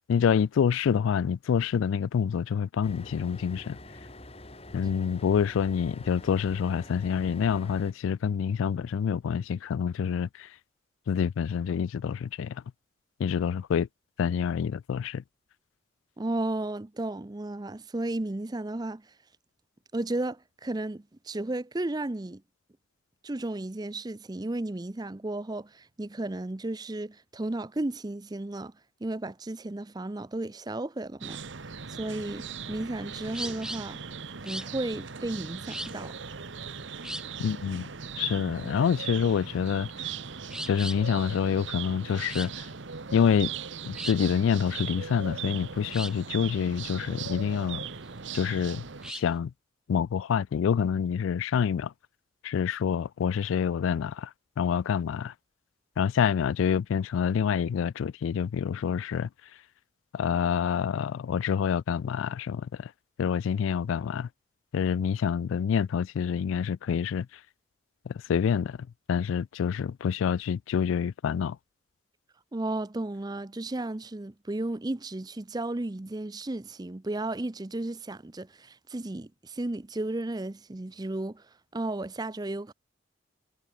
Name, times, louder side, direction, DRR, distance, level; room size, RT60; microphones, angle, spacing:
voice 1, 0.0-3.8 4.7-10.5 11.1-12.6 13.2-13.9 14.2-15.2 37.4-37.9 38.2-40.1 40.7-42.7 43.1-43.5 43.8-47.8 48.3-49.5 49.9-51.9 52.4-54.3 54.6-55.3 56.0-59.3 60.1-62.9 63.2-64.3 64.7-67.3 68.1-68.8 69.1-71.6, left 7 dB, 80° left, 0.3 m, -27 dB
sound 1, 2.8-7.9, left 1 dB, 30° left, 3.5 m, -46 dB
voice 2, 16.2-19.0 19.9-22.4 23.2-28.7 29.0-31.4 31.9-34.0 34.4-36.1 72.5-81.4 81.7-82.7, right 2 dB, 20° right, 0.5 m, -34 dB
sound 2, 31.2-49.1, right 6 dB, 70° right, 1.1 m, -39 dB
sound 3, 32.5-49.4, right 1 dB, 5° right, 1.2 m, -42 dB
head